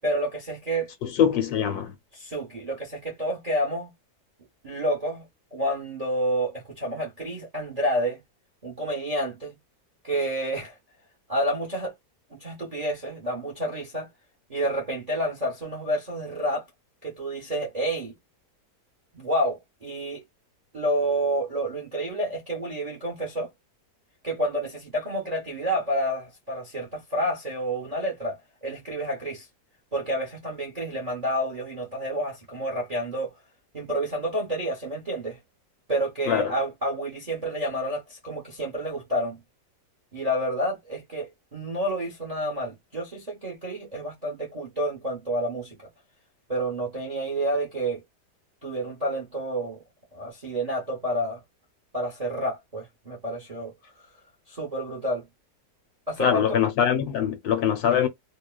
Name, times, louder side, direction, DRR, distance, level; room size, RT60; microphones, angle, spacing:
voice 1, 0.0-0.9 2.1-3.9 4.6-5.3 5.5-8.2 8.6-9.6 10.0-10.8 11.3-11.9 12.3-14.1 14.5-16.6 17.0-18.1 19.1-20.2 20.7-23.5 24.2-29.5 29.9-33.3 33.7-35.4 35.9-39.4 40.1-45.9 46.5-48.0 48.6-49.8 50.1-51.4 51.9-53.7 54.5-55.3 56.1-56.6, right 1 dB, 35° right, 0.6 m, -29 dB
voice 2, 1.0-1.9 36.3-36.5 56.2-58.1, left 8 dB, 70° left, 1.1 m, -23 dB
2.8 x 2.1 x 2.2 m
omnidirectional pair, 1.8 m